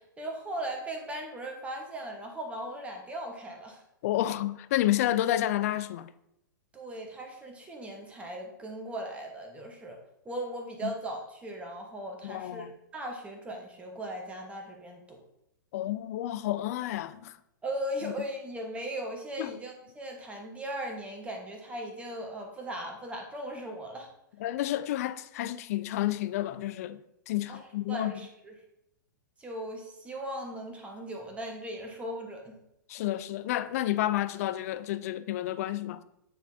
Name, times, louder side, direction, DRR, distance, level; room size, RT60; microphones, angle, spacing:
voice 1, 0.0-3.8 6.7-10.0 10.2-15.2 17.6-24.1 27.5-28.5 29.4-32.6, right 1 dB, 10° right, 1.1 m, -38 dB
voice 2, 4.0-6.1 10.8-10.9 12.2-12.7 15.7-17.4 19.4-19.5 24.4-27.0 27.3-28.1 32.9-36.0, left 14 dB, 50° left, 0.4 m, -30 dB
9.1 x 4.1 x 2.6 m
figure-of-eight pair, 105°, 11 cm